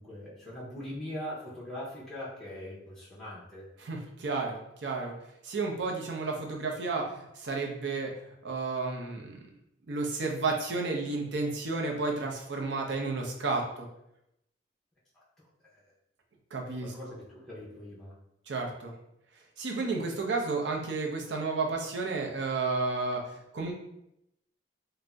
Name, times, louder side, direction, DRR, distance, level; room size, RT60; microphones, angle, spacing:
voice 1, 0.0-3.7 15.1-15.2 15.7-15.8 16.8-18.1, left 1 dB, ahead, -7 dB, 0.6 m, -41 dB
voice 2, 3.8-5.1 5.4-9.4 9.9-13.9 16.5-16.9 18.5-18.9 19.6-23.2 23.5-23.7, right 3 dB, 65° right, 1 dB, 0.5 m, -32 dB
2.5 x 2.0 x 3.3 m, 0.82 s
head